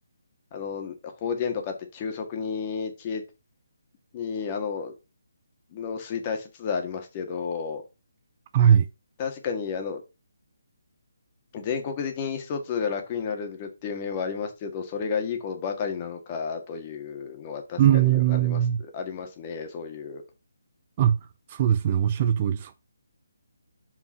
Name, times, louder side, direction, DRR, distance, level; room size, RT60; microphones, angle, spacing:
voice 1, 0.5-3.2 4.1-4.9 5.7-7.8 9.2-10.0 11.5-20.2, left 6 dB, 25° left, 1.8 m, -32 dB
voice 2, 8.5-8.9 17.8-18.8 21.0-21.2 21.5-22.7, right 10 dB, 30° right, 0.5 m, -20 dB
5.4 x 5.2 x 5.6 m
figure-of-eight pair, 155°, 0 cm